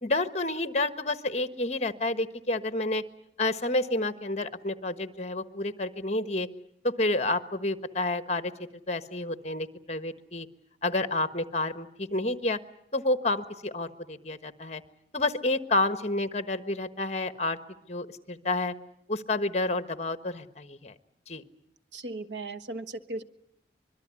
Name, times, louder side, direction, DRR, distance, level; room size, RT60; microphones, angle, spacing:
voice 1, 0.0-3.0 3.4-6.5 6.8-8.5 8.9-10.5 10.8-12.6 12.9-14.8 15.1-17.6 17.9-18.7 19.1-20.9 21.3-21.4, left 2 dB, 35° left, 11 dB, 1.3 m, -29 dB
voice 2, 21.9-23.2, right 2 dB, 75° right, 11 dB, 1.4 m, -37 dB
25.0 x 22.0 x 9.7 m, 0.74 s
head